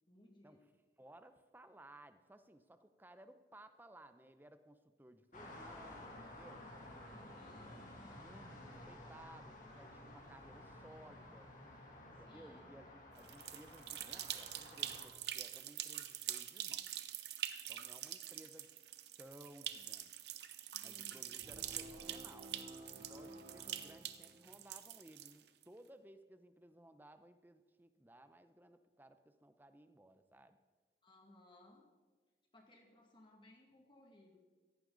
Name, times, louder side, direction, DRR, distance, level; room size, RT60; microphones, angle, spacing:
voice 1, 0.1-0.7 7.0-7.9 12.1-12.7 20.7-21.4 31.0-31.9 32.5-34.4, left 1 dB, 25° left, 1 dB, 2.1 m, -63 dB
voice 2, 1.0-6.7 7.7-11.5 12.0-16.9 17.7-18.7 19.2-20.3 20.8-22.6 22.9-30.6, right 1 dB, 10° right, 10 dB, 0.7 m, -59 dB
sound 1, 5.3-15.1, left 1 dB, 45° left, 2.6 m, -54 dB
sound 2, 13.2-25.6, right 11 dB, 65° right, 0.8 m, -45 dB
sound 3, 21.4-24.7, right 1 dB, 40° right, 2.4 m, -54 dB
17.0 x 14.5 x 4.0 m, 1.3 s
head